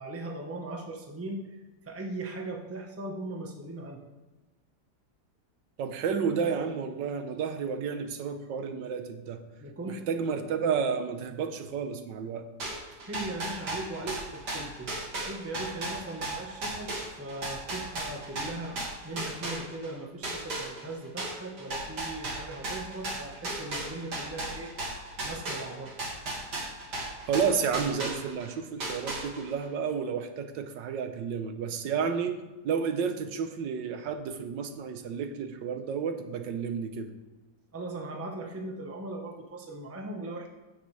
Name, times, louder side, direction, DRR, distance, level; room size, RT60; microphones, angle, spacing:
voice 1, 0.0-1.6 1.9-4.0 9.6-10.0 12.9-16.9 17.2-24.7 25.2-26.0 37.7-40.5, right 2 dB, 10° right, 1 dB, 0.8 m, -39 dB
voice 2, 5.8-9.4 9.9-12.5 27.3-32.4 32.6-37.1, right 6 dB, 85° right, 8 dB, 1.5 m, -31 dB
sound 1, 12.6-19.9 20.2-28.5 28.8-29.6, right 2 dB, 65° right, 2.7 m, -35 dB
15.5 x 6.6 x 3.3 m, 1.1 s
omnidirectional pair, 1.9 m